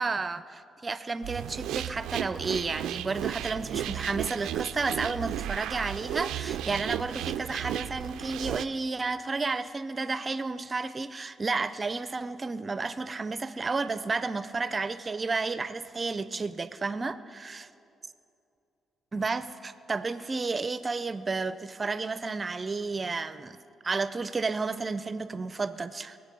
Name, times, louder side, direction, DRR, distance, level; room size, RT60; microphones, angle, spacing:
voice 1, 0.0-17.7 19.1-23.6 23.8-26.2, right 4 dB, 30° right, 13 dB, 0.5 m, -32 dB
sound 1, 1.2-8.7, right 12 dB, 85° right, 0.3 m, -34 dB
23.0 x 8.1 x 5.4 m, 2.7 s
cardioid pair, 90°, 0 cm